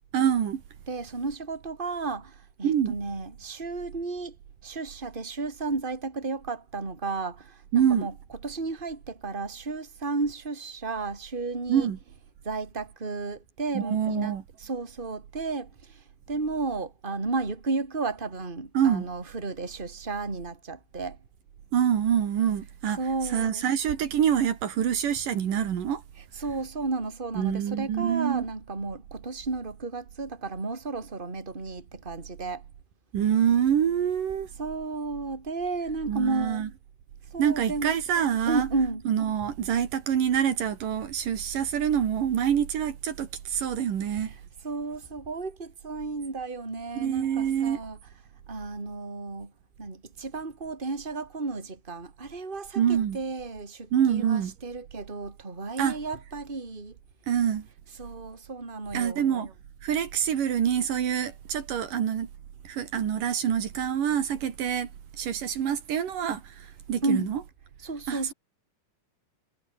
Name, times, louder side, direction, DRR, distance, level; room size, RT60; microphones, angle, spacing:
voice 1, 0.1-0.6 2.6-3.0 7.7-8.1 11.7-12.0 13.7-14.4 18.7-19.1 21.7-26.0 27.4-28.5 33.1-34.5 36.1-36.7 37.4-44.3 47.0-47.8 52.8-53.2 53.9-54.5 55.8-56.0 57.3-57.7 58.9-59.5 59.8-62.3 62.7-64.9 65.2-67.5 68.1-68.3, right 9 dB, 70° right, 3.7 m, -26 dB
voice 2, 0.9-4.3 4.6-8.1 8.4-11.9 12.4-14.3 14.6-21.2 23.0-23.6 26.3-32.6 34.6-36.7 37.3-37.9 38.5-39.0 44.1-44.3 44.6-48.0 48.5-49.5 49.8-57.0 58.0-59.5 67.0-67.3 67.8-68.3, right 3 dB, 15° right, 3.3 m, -33 dB
omnidirectional pair, 4.0 m